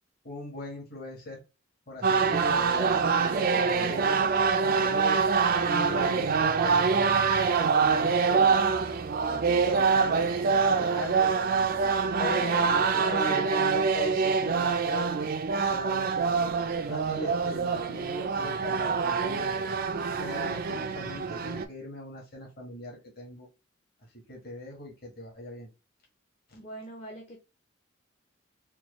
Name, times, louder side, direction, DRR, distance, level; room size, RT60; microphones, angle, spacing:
voice 1, 0.2-1.4 1.9-5.2 5.6-8.7 9.3-11.3 12.2-15.1 15.7-16.3 16.9-19.5 20.2-23.5 24.3-25.7 26.5-26.6, left 1 dB, 50° left, -3 dB, 1.5 m, -39 dB
sound 1, 2.0-21.7, right 5 dB, 45° right, 0.4 m, -25 dB
voice 2, 3.5-4.1 5.8-6.4 12.3-13.6 26.5-27.4, left 1 dB, 30° left, 0 dB, 0.6 m, -41 dB
4.4 x 2.3 x 3.0 m, 0.27 s
head